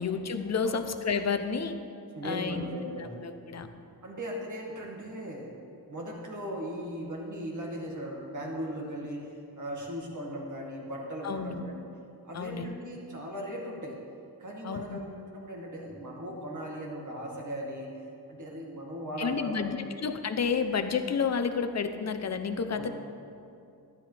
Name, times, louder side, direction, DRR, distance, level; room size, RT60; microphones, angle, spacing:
voice 1, 0.0-1.8 2.2-2.6 3.0-3.7 11.2-11.6 12.3-12.7 14.6-15.0 19.2-22.9, left 5 dB, 40° left, 9 dB, 0.7 m, -30 dB
voice 2, 2.1-3.2 4.0-5.5 5.9-11.7 12.2-14.0 14.4-15.1 15.3-17.9 18.3-20.0 22.7-22.9, equal, 45° right, -1 dB, 2.0 m, -38 dB
13.0 x 10.5 x 3.4 m, 2.6 s
wide cardioid pair, 115°, 40 cm